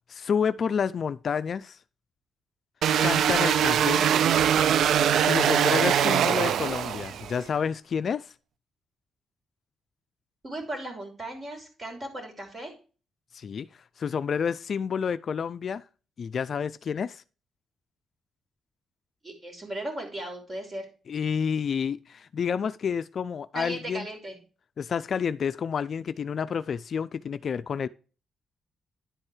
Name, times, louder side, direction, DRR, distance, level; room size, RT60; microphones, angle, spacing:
voice 1, 0.1-1.8 3.0-4.1 5.2-8.3 13.3-13.7 14.0-15.8 16.2-17.2 21.1-24.1 24.8-27.9, left 6 dB, 50° left, 0.4 m, -29 dB
sound 1, 2.8-7.4, right 9 dB, 75° right, 0.4 m, -22 dB
voice 2, 10.4-12.7 19.2-20.9 23.5-24.4, right 1 dB, 35° right, 3.3 m, -36 dB
10.5 x 4.5 x 4.9 m
cardioid pair, 110°, 0 cm